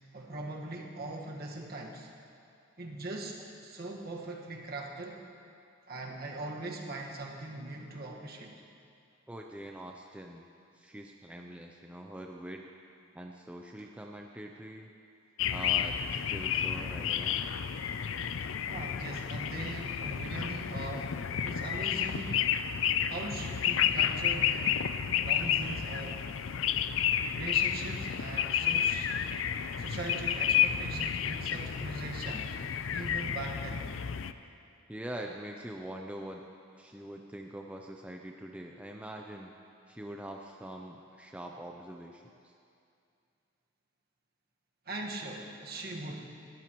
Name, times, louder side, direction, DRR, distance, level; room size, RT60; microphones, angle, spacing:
voice 1, 0.1-2.1 2.8-5.2 5.9-8.5 13.8-13.9 18.7-22.4 23.1-24.9 25.2-26.2 27.3-29.1 29.8-32.5 32.9-33.9 44.8-46.4, right 2 dB, 50° right, -1 dB, 1.5 m, -41 dB
voice 2, 9.3-10.5 10.7-12.7 13.1-14.9 15.5-17.5 28.6-28.7 34.9-36.4 36.8-39.6 39.9-42.5, right 1 dB, 5° right, 1 dB, 0.5 m, -44 dB
sound 1, 15.4-34.3, left 9 dB, 65° left, 0.4 m, -31 dB
20.5 x 13.5 x 3.0 m, 2.5 s
head